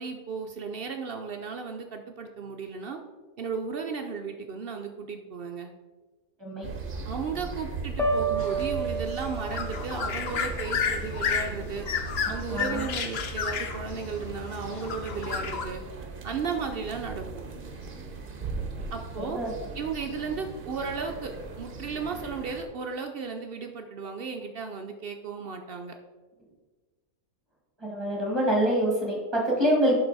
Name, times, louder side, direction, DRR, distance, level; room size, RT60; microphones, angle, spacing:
voice 1, 0.0-3.0 3.4-5.7 7.0-11.9 12.3-15.8 16.2-17.4 18.9-19.4 19.7-25.9, right 5 dB, 65° right, 4 dB, 0.6 m, -35 dB
sound 1, 6.6-22.6, right 4 dB, 45° right, 0.9 m, -38 dB
sound 2, 8.0-9.9, right 3 dB, 5° left, 0.5 m, -29 dB
sound 3, 8.4-15.7, left 6 dB, 55° left, 0.8 m, -32 dB
voice 2, 12.5-12.8 19.2-19.5 27.8-30.0, right 1 dB, 20° right, -3 dB, 1.7 m, -25 dB
11.0 x 3.9 x 4.0 m, 1.3 s
omnidirectional pair, 1.5 m